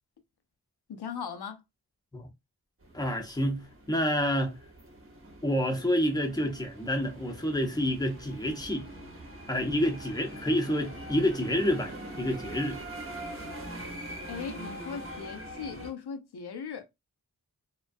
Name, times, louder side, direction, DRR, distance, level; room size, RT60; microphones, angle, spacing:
voice 1, 0.9-1.6 14.3-16.9, left 6 dB, 80° left, 0.6 m, -38 dB
sound 1, 2.8-15.9, right 1 dB, 35° right, 0.8 m, -43 dB
voice 2, 2.9-4.6 5.4-8.9 9.5-12.8, equal, 10° left, 0.7 m, -28 dB
2.3 x 2.1 x 2.5 m
wide cardioid pair, 40°, 38 cm